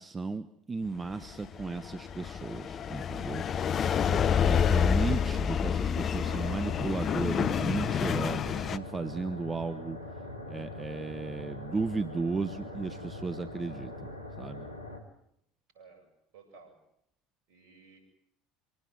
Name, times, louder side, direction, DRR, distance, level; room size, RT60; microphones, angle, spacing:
voice 1, 0.0-3.8 4.1-10.0 10.5-14.1 14.4-14.7, right 4 dB, 20° right, 11 dB, 1.1 m, -35 dB
sound 1, 1.2-8.8, left 7 dB, 40° left, 1.1 m, -28 dB
sound 2, 6.2-15.0, left 2 dB, 90° left, 3.1 m, -42 dB
voice 2, 15.7-16.8 17.5-18.0, right 4 dB, 60° right, 6 dB, 7.8 m, -56 dB
25.5 x 18.0 x 8.1 m, 0.74 s
figure-of-eight pair, 70°, 0 cm